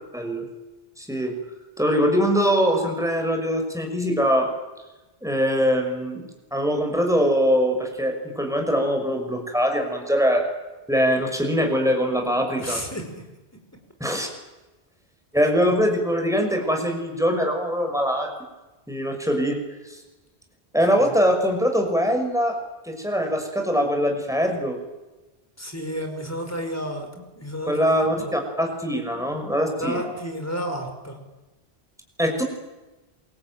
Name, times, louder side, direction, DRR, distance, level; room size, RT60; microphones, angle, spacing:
voice 1, 0.1-0.4 1.0-1.3 1.8-4.5 5.2-10.4 10.9-12.8 14.0-14.3 15.3-18.3 18.9-19.6 20.7-22.6 22.8-24.8 27.7-30.1 32.2-32.4, equal, 5° right, 4 dB, 5.8 m, -22 dB
voice 2, 12.6-13.2 15.6-15.8 21.0-21.1 25.6-27.1 27.4-28.3 29.7-31.2, equal, 15° left, 4 dB, 5.4 m, -31 dB
27.0 x 23.5 x 9.3 m, 1.1 s
omnidirectional pair, 1.1 m